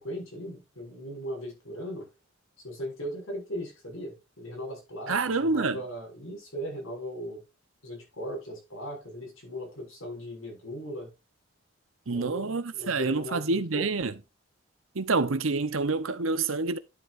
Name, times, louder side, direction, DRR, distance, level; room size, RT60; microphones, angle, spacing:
voice 1, 0.0-2.1 2.6-7.4 7.8-11.1 12.1-13.9, equal, 85° left, 6.4 m, -38 dB
voice 2, 5.1-5.8 12.1-14.1 14.9-16.8, right 3 dB, 85° right, 1.0 m, -27 dB
11.5 x 8.1 x 2.6 m
head